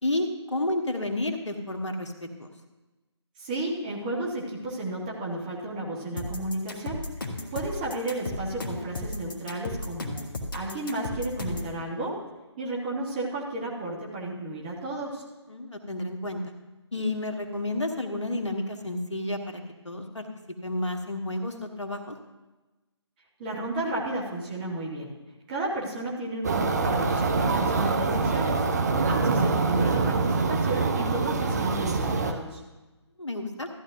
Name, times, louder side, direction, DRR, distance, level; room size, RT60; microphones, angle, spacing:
voice 1, 0.0-2.5 15.5-16.4 16.9-20.3 20.6-22.2 33.2-33.7, left 1 dB, 80° left, 4 dB, 1.3 m, -31 dB
voice 2, 3.4-7.0 7.5-10.2 10.5-12.2 12.6-15.2 23.4-25.1 25.5-28.6 29.1-32.6, right 2 dB, 20° right, -3 dB, 1.5 m, -33 dB
sound 1, 6.2-11.7, left 2 dB, 45° left, 1.3 m, -34 dB
sound 2, 26.4-32.3, right 3 dB, 35° right, 0.7 m, -25 dB
14.0 x 10.0 x 2.6 m, 1.1 s
figure-of-eight pair, 150°, 15 cm